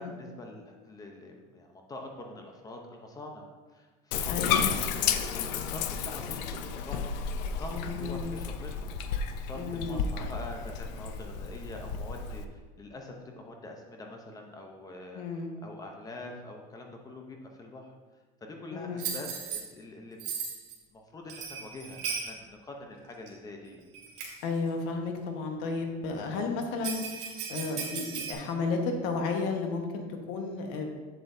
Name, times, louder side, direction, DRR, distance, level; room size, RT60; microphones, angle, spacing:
voice 1, 0.0-7.1 7.4-17.9 18.4-20.3 20.9-23.8, left 2 dB, 15° left, 2 dB, 0.7 m, -45 dB
Bathtub (filling or washing), 4.1-12.4, left 6 dB, 80° left, 0.6 m, -32 dB
voice 2, 4.3-4.7 7.7-8.4 9.5-10.1 15.1-15.5 18.7-19.1 24.4-30.9, left 4 dB, 65° left, 3 dB, 1.3 m, -33 dB
Bell, 19.0-19.6 20.2-20.7 21.3-22.3 23.3-23.4 23.9-24.4 26.8-28.3, right 6 dB, 85° right, 2.4 m, -36 dB
7.8 x 7.8 x 2.7 m, 1.3 s
cardioid pair, 150°, 21 cm